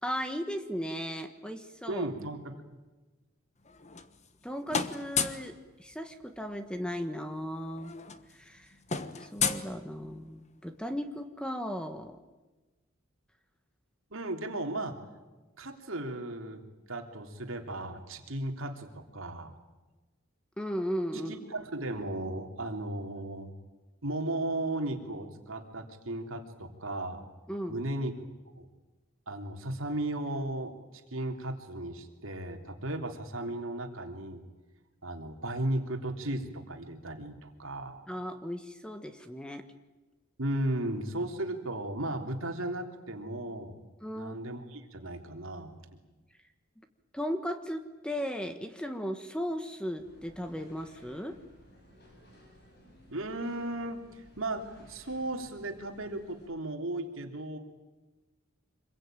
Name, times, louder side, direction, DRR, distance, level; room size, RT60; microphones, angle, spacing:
voice 1, 0.0-2.1 4.4-7.9 8.3-8.7 9.2-12.2 20.6-21.4 27.5-27.8 38.1-39.7 44.0-44.4 47.1-51.4, equal, 5° left, 8 dB, 1.3 m, -36 dB
voice 2, 1.9-2.5 14.1-15.0 15.6-16.6 16.9-19.5 21.1-23.5 24.0-27.2 27.7-28.1 28.6-28.7 29.3-30.8 31.1-34.4 35.0-38.0 40.4-43.8 44.1-46.0 53.1-57.6, right 1 dB, 70° right, 4 dB, 3.2 m, -35 dB
sound 1, 3.6-4.4 4.7-5.5 6.9-7.0 7.2-7.4 7.7-10.3, left 6 dB, 35° left, 1.2 m, -33 dB
sound 2, 50.0-56.5, equal, 50° left, 7.5 m, -58 dB
26.0 x 22.0 x 9.1 m, 1.2 s
head